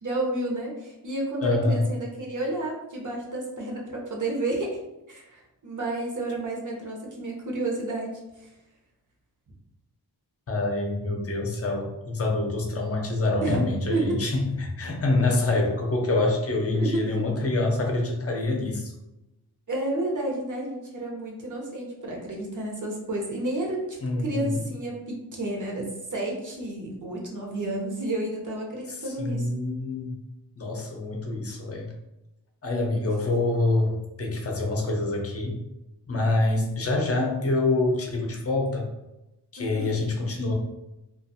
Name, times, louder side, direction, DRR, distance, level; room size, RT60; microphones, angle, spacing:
voice 1, 0.0-4.7 5.1-8.5 13.4-13.6 13.9-14.3 16.7-17.2 19.7-29.5 39.6-40.0, right 2 dB, 45° right, -1 dB, 0.8 m, -31 dB
voice 2, 1.4-1.8 10.5-18.9 24.0-24.6 29.2-30.1 30.6-31.9 32.6-35.6 36.1-38.9 39.5-40.5, left 2 dB, 35° left, 1 dB, 0.7 m, -26 dB
2.4 x 2.4 x 2.6 m, 0.93 s
wide cardioid pair, 80°, 41 cm